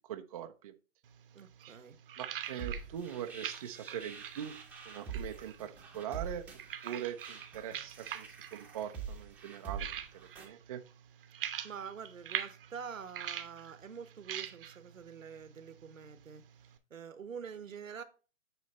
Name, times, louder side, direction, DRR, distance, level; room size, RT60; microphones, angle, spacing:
voice 1, 0.1-0.7 2.2-4.6 4.9-6.4 6.8-9.9 10.4-10.8, right 10 dB, 30° right, 0.5 m, -42 dB
sound 1, 1.0-16.8, right 10 dB, 45° right, 0.8 m, -45 dB
voice 2, 1.3-2.0 11.6-18.0, right 6 dB, 85° right, 1.1 m, -46 dB
sound 2, 2.4-10.5, right 6 dB, 5° right, 0.9 m, -45 dB
9.4 x 3.2 x 4.1 m
hypercardioid pair, 135°, 39 cm